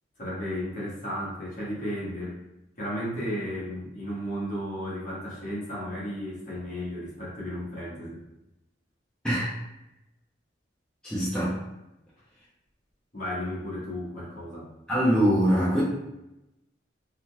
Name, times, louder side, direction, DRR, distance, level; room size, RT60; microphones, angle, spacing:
voice 1, 0.2-2.4 2.8-8.2 13.1-14.7, equal, 40° left, -6 dB, 1.2 m, -34 dB
voice 2, 11.0-11.6 14.9-15.8, equal, 5° left, -10 dB, 0.7 m, -23 dB
3.6 x 2.8 x 2.3 m, 0.92 s
head